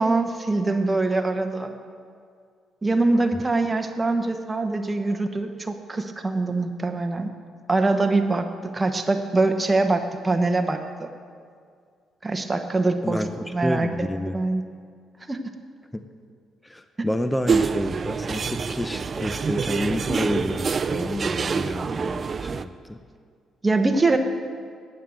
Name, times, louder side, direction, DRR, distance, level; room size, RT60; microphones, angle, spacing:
voice 1, 0.0-1.7 2.8-7.3 7.7-11.1 12.2-13.2 13.5-14.1 14.3-14.6 15.3-15.4 23.6-24.2, right 3 dB, 20° right, 5 dB, 1.0 m, -23 dB
voice 2, 13.0-14.4 15.9-16.0 16.6-23.0, left 1 dB, 10° left, 9 dB, 0.5 m, -29 dB
sound 1, 17.5-22.6, right 5 dB, 40° right, 0.4 m, -26 dB
9.3 x 8.5 x 7.6 m, 2.1 s
cardioid pair, 90°, 0 cm